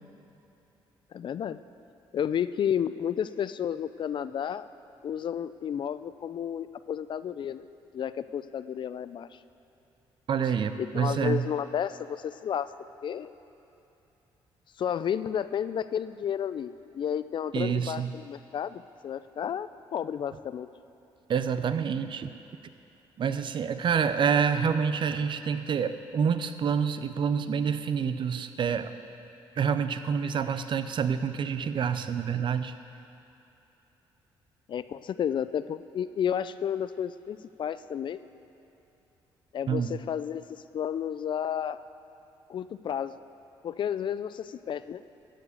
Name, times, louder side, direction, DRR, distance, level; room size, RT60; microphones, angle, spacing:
voice 1, 1.1-1.6 2.1-4.7 5.0-7.7 7.9-9.4 10.8-12.7 13.0-13.3 14.8-20.7 34.7-38.2 39.5-41.8 42.5-43.1 43.6-45.0, left 8 dB, 50° left, 14 dB, 0.4 m, -32 dB
voice 2, 10.3-11.4 17.5-18.1 21.3-22.3 23.2-28.9 29.6-32.7 39.7-39.9, right 7 dB, 50° right, 11 dB, 0.6 m, -27 dB
12.5 x 5.1 x 8.3 m, 2.9 s
supercardioid pair, 70°, 10 cm